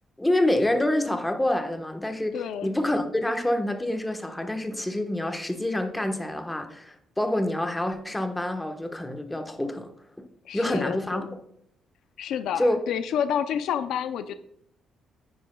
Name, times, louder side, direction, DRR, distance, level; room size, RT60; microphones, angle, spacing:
voice 1, 0.2-9.9 10.5-11.3 12.6-12.8, left 1 dB, 10° left, 5 dB, 1.2 m, -27 dB
voice 2, 2.3-2.7 10.5-11.4 12.2-14.3, left 8 dB, 80° left, 11 dB, 0.5 m, -29 dB
10.5 x 9.6 x 2.3 m, 0.70 s
cardioid pair, 90°, 0 cm